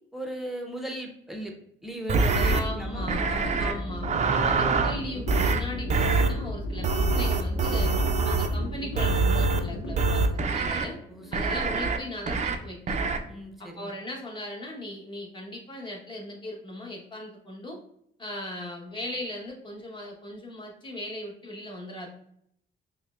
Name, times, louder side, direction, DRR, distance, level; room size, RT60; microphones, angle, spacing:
voice 1, 0.1-1.5 1.8-3.9 11.1-11.5 13.3-13.9, right 1 dB, ahead, 1 dB, 0.7 m, -37 dB
sound 1, 2.1-2.6 3.1-3.7 4.0-5.0 5.3-5.6 5.9-6.3 6.8-8.5 9.0-9.6 10.0-10.9 11.3-12.0 12.3-12.6 12.9-13.2, right 4 dB, 35° right, 0.4 m, -24 dB
sound 2, 2.3-12.4, equal, 80° left, 0.8 m, -35 dB
voice 2, 2.5-3.3 3.6-4.1 4.4-7.9 8.3-11.0 11.3-13.0 13.6-17.8 18.2-22.1, left 1 dB, 25° left, -2 dB, 1.2 m, -38 dB
5.5 x 2.1 x 2.4 m, 0.70 s
cardioid pair, 90°, 20 cm